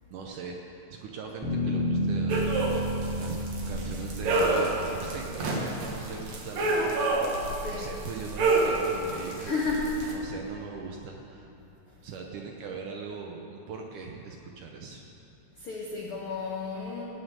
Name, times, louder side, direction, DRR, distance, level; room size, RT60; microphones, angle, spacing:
voice 1, 0.1-2.5 3.2-3.4 3.7-7.1 7.7-9.6 10.1-11.5 12.0-15.0, right 5 dB, 70° right, 1 dB, 2.0 m, -40 dB
Bass guitar, 1.4-5.8, equal, ahead, 2.7 m, -31 dB
sound 1, 2.3-10.1, right 2 dB, 55° right, 2.4 m, -29 dB
voice 2, 7.4-7.9 9.4-9.9 15.6-17.0, left 4 dB, 70° left, -3 dB, 1.3 m, -32 dB
16.5 x 6.8 x 9.1 m, 2.9 s
omnidirectional pair, 4.5 m